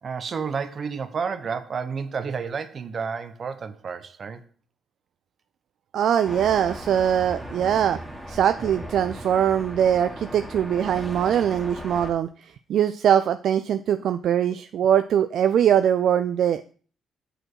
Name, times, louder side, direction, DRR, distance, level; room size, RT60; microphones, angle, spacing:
voice 1, 0.0-4.5, right 5 dB, 50° right, 0.8 m, -31 dB
voice 2, 5.9-8.0 8.3-16.7, right 9 dB, 70° right, 0.3 m, -22 dB
sound 1, 6.2-12.1, equal, ahead, 1.8 m, -37 dB
6.3 x 4.9 x 4.6 m
supercardioid pair, 70°, 0 cm